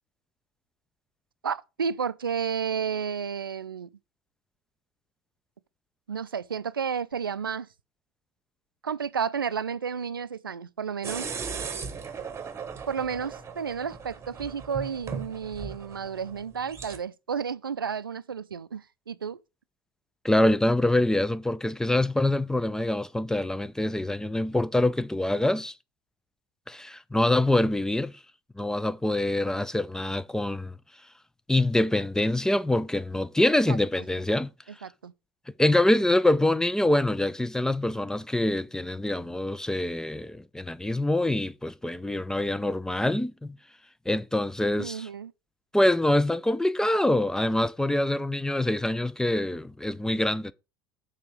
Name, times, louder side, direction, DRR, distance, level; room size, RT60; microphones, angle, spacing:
voice 1, 1.4-3.9 6.1-7.7 8.8-11.3 12.9-19.4 33.7-33.8 34.8-35.1 44.8-45.3, right 6 dB, 80° right, 0.4 m, -32 dB
sound 1, 11.0-17.0, right 6 dB, 25° right, 1.2 m, -38 dB
voice 2, 20.2-25.7 26.7-28.1 28.6-30.7 31.5-34.5 35.6-43.6 44.1-45.1 45.7-50.5, left 1 dB, 5° left, 0.4 m, -25 dB
6.8 x 5.0 x 6.1 m
figure-of-eight pair, 70°, 11 cm